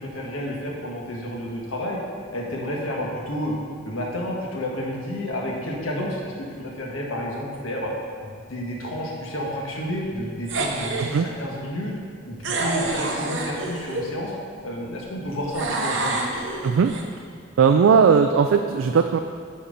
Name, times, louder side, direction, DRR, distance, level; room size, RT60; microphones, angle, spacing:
voice 1, 0.0-2.0 2.3-3.6 3.8-7.9 8.2-12.0 12.3-14.3 14.6-16.2, left 1 dB, 85° left, -2 dB, 1.5 m, -30 dB
sound 1, 10.5-11.2 12.4-14.1 15.5-17.0, right 2 dB, 65° right, 0.9 m, -27 dB
voice 2, 16.6-16.9 17.6-19.2, right 6 dB, 85° right, 6 dB, 0.3 m, -18 dB
8.9 x 4.3 x 5.2 m, 2.3 s
head